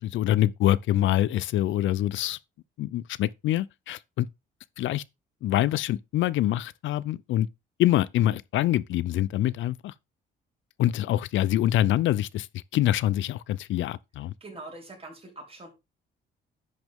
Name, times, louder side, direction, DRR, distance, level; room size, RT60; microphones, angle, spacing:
voice 1, 0.0-2.4 2.8-4.3 4.8-5.0 5.4-7.5 7.8-9.9 10.8-12.5 12.7-14.3, left 13 dB, 75° left, 0.5 m, -25 dB
voice 2, 14.4-15.7, right 2 dB, 30° right, 4.6 m, -43 dB
10.5 x 6.1 x 3.6 m
cardioid pair, 90°, 20 cm